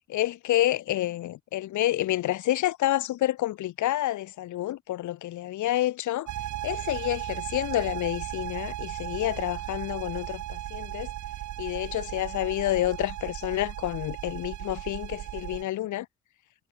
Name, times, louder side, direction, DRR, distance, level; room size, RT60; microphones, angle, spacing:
voice 1, 0.1-6.3 6.6-11.1 11.6-16.1, left 14 dB, 90° left, 0.6 m, -29 dB
sound 1, 6.3-15.6, right 13 dB, 80° right, 0.6 m, -36 dB
cardioid pair, 65°, 29 cm